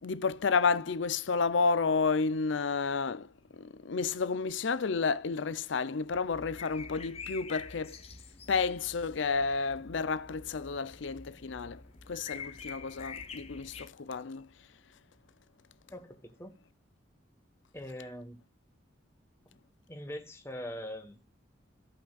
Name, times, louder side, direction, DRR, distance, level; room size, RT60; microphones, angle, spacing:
voice 1, 0.0-8.0 8.5-14.5, left 4 dB, 75° left, 0.5 m, -31 dB
sound 1, 6.1-13.9, left 5 dB, 30° left, 0.9 m, -47 dB
voice 2, 15.9-16.6 17.7-18.4 19.9-21.3, left 1 dB, 15° left, 1.3 m, -42 dB
16.0 x 5.8 x 2.3 m
head